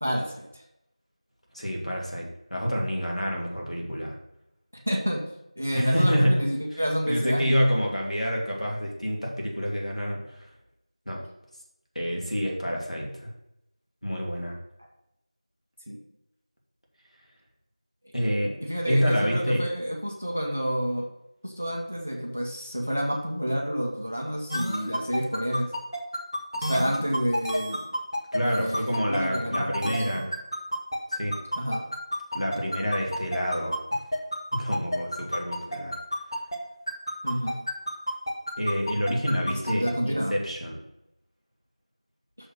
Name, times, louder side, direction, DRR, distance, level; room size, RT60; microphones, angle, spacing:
voice 1, 0.0-0.5 4.9-5.2 5.6-7.6 15.9-16.0 18.6-21.1 21.4-25.7 26.7-27.8 28.4-30.3 31.6-31.8 37.2-37.6 39.5-40.3, equal, 15° right, 0 dB, 0.4 m, -29 dB
voice 2, 1.5-4.2 5.7-6.4 6.7-6.8 7.1-10.5 11.1-11.2 11.9-13.3 14.0-14.6 18.1-18.5 18.9-19.6 28.3-30.3 31.1-31.4 32.3-34.0 34.5-35.9 38.6-40.8, equal, 85° left, -1 dB, 2.5 m, -27 dB
sound 1, 24.5-36.6 36.9-39.9, equal, 40° left, 1.0 m, -29 dB
6.4 x 4.3 x 6.5 m, 0.86 s
figure-of-eight pair, 175°, 4 cm